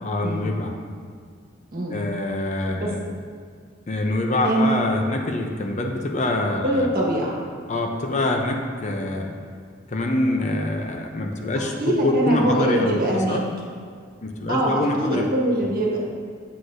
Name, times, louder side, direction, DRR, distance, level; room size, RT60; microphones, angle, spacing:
voice 1, 0.0-0.7 1.9-3.0 3.9-6.9 7.7-9.3 9.9-13.5 14.2-15.3 15.6-15.7, left 1 dB, 35° left, 3 dB, 0.6 m, -25 dB
voice 2, 6.6-7.4 11.8-13.4 14.5-16.0, right 1 dB, 50° right, -3 dB, 1.4 m, -23 dB
8.0 x 7.7 x 2.6 m, 2.1 s
head